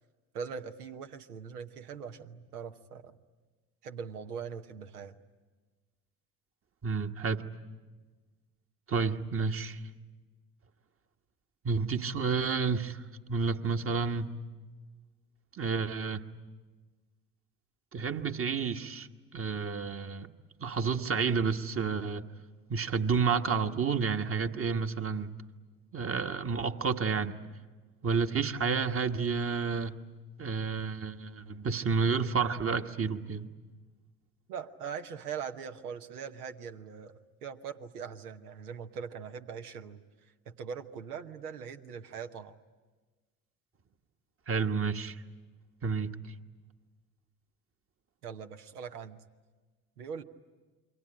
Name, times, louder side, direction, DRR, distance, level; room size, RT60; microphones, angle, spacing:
voice 1, 0.3-3.2 3.8-5.2 34.5-37.1 37.4-42.5 48.2-49.2 50.0-50.2, right 6 dB, 80° right, 1.1 m, -41 dB
voice 2, 6.8-7.4 8.9-9.8 11.6-13.0 13.3-14.4 15.5-16.2 17.9-19.1 19.3-20.3 20.6-22.2 22.7-25.3 25.9-27.4 28.0-29.9 30.4-33.5 44.5-45.2 45.8-46.1, right 5 dB, 30° right, 1.3 m, -30 dB
28.0 x 23.5 x 8.9 m
figure-of-eight pair, 60°, 44 cm